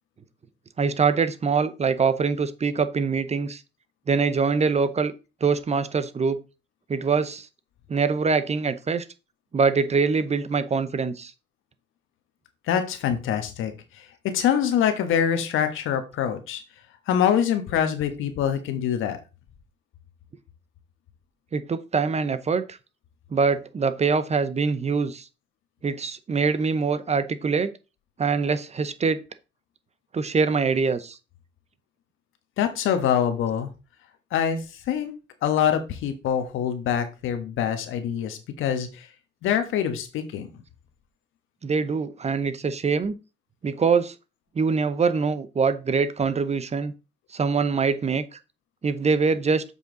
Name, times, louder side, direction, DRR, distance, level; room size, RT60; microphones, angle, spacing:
voice 1, 0.8-3.6 4.1-5.1 5.4-6.4 6.9-7.5 7.9-9.1 9.5-11.3 21.5-22.8 23.3-25.3 25.8-27.7 28.2-29.2 30.1-31.2 41.6-43.1 43.6-44.1 44.5-46.9 47.3-48.2 48.8-49.6, right 5 dB, 35° right, 0.8 m, -24 dB
voice 2, 12.7-16.6 17.1-19.2 32.6-33.7 34.3-35.1 35.4-39.1 39.4-40.5, left 9 dB, 85° left, 1.3 m, -25 dB
7.3 x 5.6 x 3.9 m
cardioid pair, 90°, 20 cm